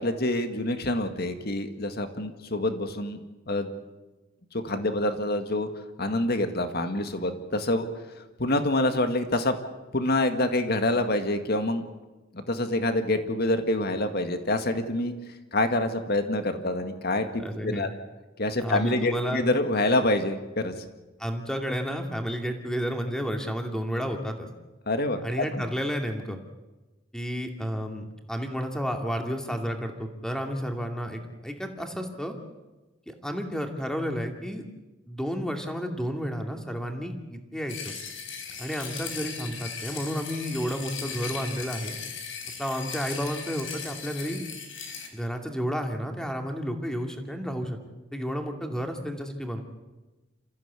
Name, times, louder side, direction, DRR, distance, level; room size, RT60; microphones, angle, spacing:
voice 1, 0.0-3.2 3.5-3.7 4.5-5.7 6.0-7.9 8.2-9.6 9.9-11.8 12.3-15.1 15.5-17.9 18.4-20.7 24.9-25.6, left 1 dB, 55° left, 7 dB, 2.0 m, -26 dB
voice 2, 17.4-17.9 18.6-19.4 21.2-24.5 25.2-26.4 27.1-32.3 33.1-34.6 35.1-37.9 38.6-42.0 42.6-44.4 45.1-47.8 48.1-49.6, equal, 5° left, 4 dB, 2.4 m, -31 dB
sound 1, 37.7-45.1, left 6 dB, 90° left, 3.9 m, -38 dB
28.0 x 15.0 x 8.3 m, 1.1 s
head